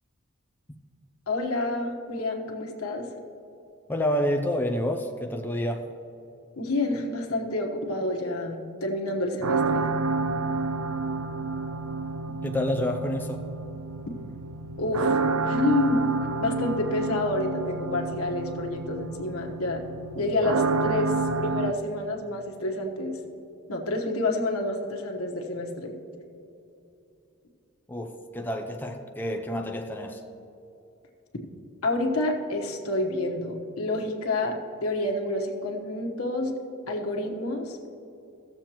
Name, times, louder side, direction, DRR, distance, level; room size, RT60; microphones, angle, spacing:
voice 1, 1.3-3.1 6.6-9.9 14.8-16.0 16.4-19.8 20.1-21.1 21.4-23.2 23.7-25.9 31.8-34.6 34.8-36.5 36.9-37.8, left 2 dB, 90° left, 2 dB, 1.2 m, -28 dB
voice 2, 3.9-5.9 12.4-13.4 27.9-30.2, left 1 dB, 10° left, 3 dB, 0.4 m, -28 dB
sound 1, 9.4-21.7, right 3 dB, 90° right, 0.4 m, -29 dB
16.5 x 7.2 x 2.9 m, 2.8 s
head